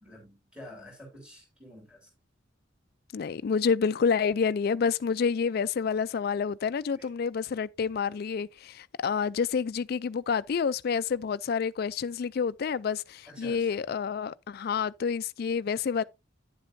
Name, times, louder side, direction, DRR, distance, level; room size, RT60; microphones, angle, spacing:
voice 1, 0.0-2.1 6.9-7.1 13.3-13.8, left 1 dB, 5° right, 3.9 m, -48 dB
voice 2, 3.1-16.0, left 6 dB, 50° left, 0.3 m, -28 dB
9.7 x 7.6 x 2.6 m
head